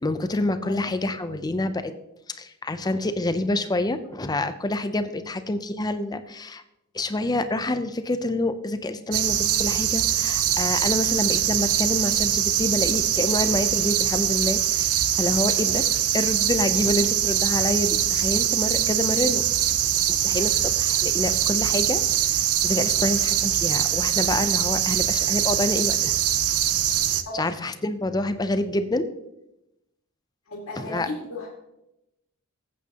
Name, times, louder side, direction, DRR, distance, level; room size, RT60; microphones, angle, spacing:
voice 1, 0.0-1.9 2.3-6.6 6.9-15.9 16.1-19.4 20.1-26.2 27.3-29.1 30.8-31.1, left 2 dB, 20° left, 10 dB, 0.5 m, -27 dB
sound 1, 9.1-27.2, right 11 dB, 90° right, 0.6 m, -23 dB
voice 2, 30.5-31.5, left 2 dB, 75° left, -2 dB, 2.1 m, -35 dB
14.0 x 8.4 x 2.9 m, 0.89 s
head